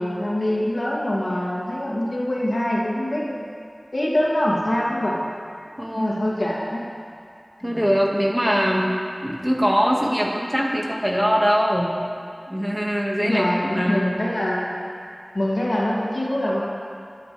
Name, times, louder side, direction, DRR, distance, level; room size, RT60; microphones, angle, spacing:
voice 1, 0.0-3.5 3.9-5.1 5.9-6.8 7.6-7.9 13.2-14.7 15.3-16.6, left 1 dB, 75° left, -5 dB, 2.5 m, -24 dB
voice 2, 5.8-6.1 7.6-8.9 9.2-11.9 12.5-14.1, equal, 10° right, -2 dB, 1.9 m, -22 dB
23.0 x 9.2 x 3.4 m, 2.3 s
wide cardioid pair, 45°, 0 cm